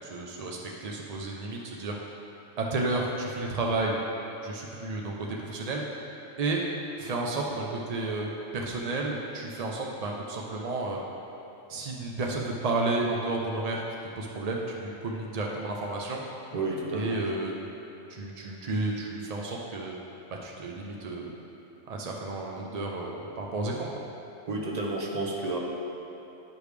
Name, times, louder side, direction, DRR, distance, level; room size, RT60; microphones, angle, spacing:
voice 1, 0.0-2.0 2.6-4.0 4.4-5.8 6.4-6.6 7.0-11.0 11.7-13.8 14.2-16.2 16.9-17.5 18.1-19.9 20.3-21.3 21.9-23.9, right 2 dB, 65° right, -1 dB, 0.4 m, -32 dB
voice 2, 16.5-17.2 24.5-25.6, right 2 dB, 40° right, -1 dB, 0.7 m, -31 dB
10.5 x 4.9 x 3.3 m, 2.9 s
omnidirectional pair, 1.4 m